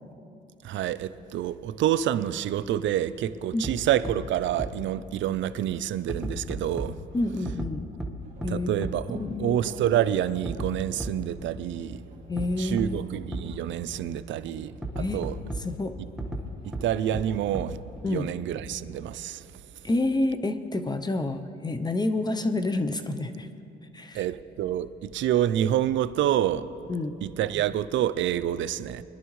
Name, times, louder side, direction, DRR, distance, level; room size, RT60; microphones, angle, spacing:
voice 1, 0.6-7.0 8.5-12.0 12.6-15.4 16.6-17.8 18.1-19.4 24.1-26.7 27.2-29.0, right 11 dB, 70° right, 14 dB, 0.5 m, -27 dB
sound 1, 3.6-3.7 4.0-4.1 4.6-4.7 6.1-6.9 7.4-7.7 8.0-8.1 8.4-8.5 8.8-8.9 10.4-10.7 11.0-11.1 12.4-12.5 12.8-12.9 13.3-13.4 14.8-15.6 16.2-16.4 16.7-16.8 17.1-17.2 17.5-17.6, right 2 dB, ahead, 1.2 m, -32 dB
voice 2, 7.1-7.9 8.4-8.9 9.1-9.6 12.3-13.2 15.0-15.3 15.6-15.9 18.0-18.3 19.8-23.5 23.9-24.2 26.9-27.1, left 2 dB, 20° left, 8 dB, 0.6 m, -28 dB
sound 2, 8.2-19.1, equal, 35° right, 2.8 m, -49 dB
21.0 x 11.0 x 3.1 m, 2.7 s
cardioid pair, 90°, 20 cm